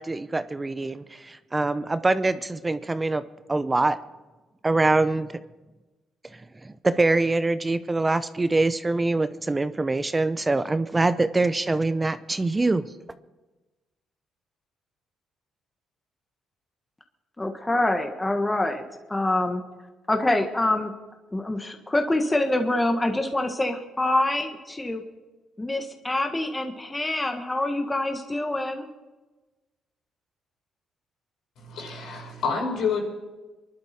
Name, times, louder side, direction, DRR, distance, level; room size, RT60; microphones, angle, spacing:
voice 1, 0.0-3.2 3.5-4.0 4.6-5.3 6.6-12.8, right 2 dB, 20° right, 12 dB, 0.6 m, -24 dB
voice 2, 17.4-18.8 19.1-19.6 20.1-20.9 21.3-25.0 25.6-28.9, left 1 dB, 15° left, 4 dB, 1.5 m, -25 dB
voice 3, 31.6-33.0, left 5 dB, 80° left, -1 dB, 5.5 m, -28 dB
25.5 x 11.5 x 4.4 m, 1.2 s
cardioid pair, 90°, 0 cm